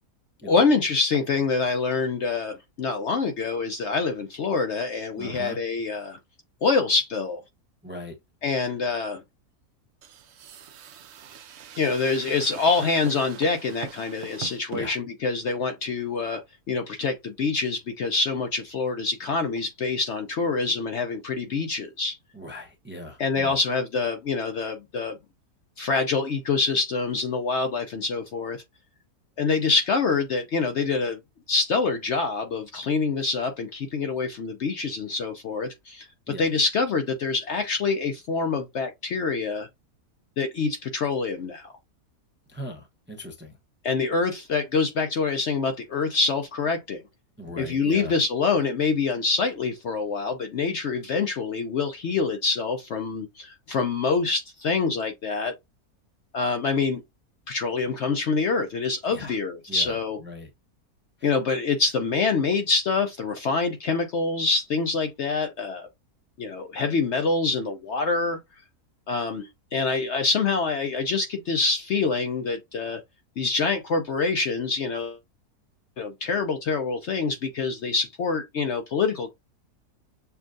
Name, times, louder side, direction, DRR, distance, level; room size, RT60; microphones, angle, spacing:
voice 1, 0.4-6.2 6.6-7.4 8.4-9.2 11.8-16.4 16.7-22.2 23.2-25.2 25.8-28.6 29.4-31.2 31.5-36.1 36.4-39.7 40.4-41.7 43.8-47.0 47.6-55.5 56.3-57.0 57.5-60.2 61.2-65.9 66.4-68.4 69.1-73.0 73.4-75.2 76.0-79.3, left 4 dB, 65° left, 0.7 m, -26 dB
voice 2, 5.2-5.6 7.8-8.2 8.6-8.7 14.7-15.0 22.3-23.6 36.3-36.5 42.5-43.6 47.4-48.2 59.1-59.4 59.7-60.5 61.2-61.4 69.9-70.0, equal, 15° right, 0.5 m, -39 dB
sound 1, 10.0-14.8, right 8 dB, 65° right, 0.7 m, -42 dB
6.9 x 2.3 x 2.5 m
omnidirectional pair, 1.7 m